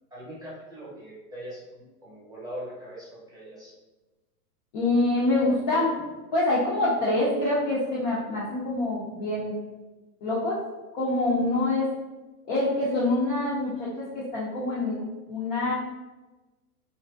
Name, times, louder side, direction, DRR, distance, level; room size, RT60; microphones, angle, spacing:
voice 1, 0.1-1.7 2.0-3.7 5.3-5.5, equal, 10° right, -8 dB, 0.8 m, -41 dB
voice 2, 4.7-5.9 6.3-9.6 10.2-10.6 10.9-11.9 12.5-15.7, left 2 dB, 30° left, -7 dB, 0.4 m, -25 dB
2.9 x 2.5 x 2.2 m, 1.1 s
hypercardioid pair, 125°, 46 cm